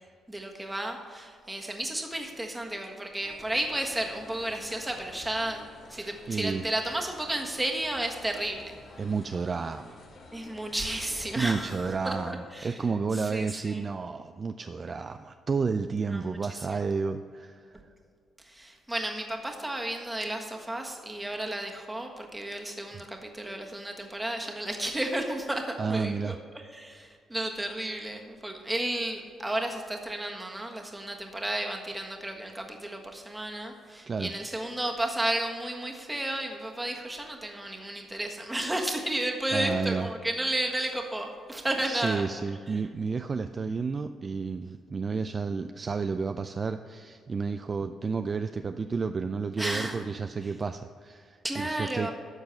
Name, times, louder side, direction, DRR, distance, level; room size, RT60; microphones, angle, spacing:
voice 1, 0.3-8.8 10.3-12.8 13.1-13.8 16.1-16.8 18.4-42.3 42.7-42.8 49.6-50.0 50.4-50.5 51.4-52.1, right 1 dB, 10° right, 2 dB, 1.5 m, -33 dB
sound 1, 3.2-12.3, left 2 dB, 60° left, 1.8 m, -49 dB
voice 2, 5.9-6.7 9.0-10.0 11.4-17.7 25.8-26.4 34.1-34.3 38.7-38.9 39.5-40.1 41.8-52.1, right 4 dB, 35° right, 8 dB, 0.4 m, -31 dB
13.0 x 4.5 x 7.0 m, 2.2 s
cardioid pair, 90°, 0 cm